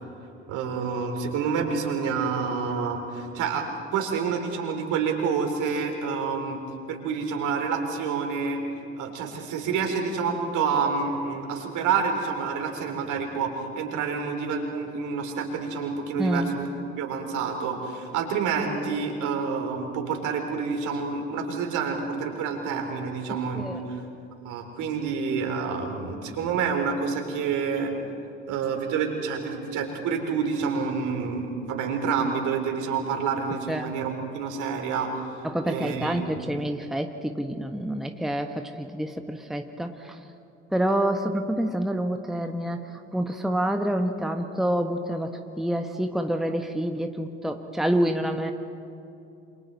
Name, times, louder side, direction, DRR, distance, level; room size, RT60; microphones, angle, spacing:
voice 1, 0.5-3.6 3.9-6.6 6.9-8.6 9.0-16.7 17.0-24.0 24.4-27.9 28.5-35.1 35.6-36.2, right 5 dB, 60° right, 3 dB, 3.8 m, -28 dB
voice 2, 16.2-16.5 23.5-23.8 33.7-33.9 35.4-40.2 40.7-48.5, right 1 dB, ahead, 5 dB, 1.4 m, -27 dB
28.5 x 27.5 x 4.2 m, 2.7 s
figure-of-eight pair, 55°, 34 cm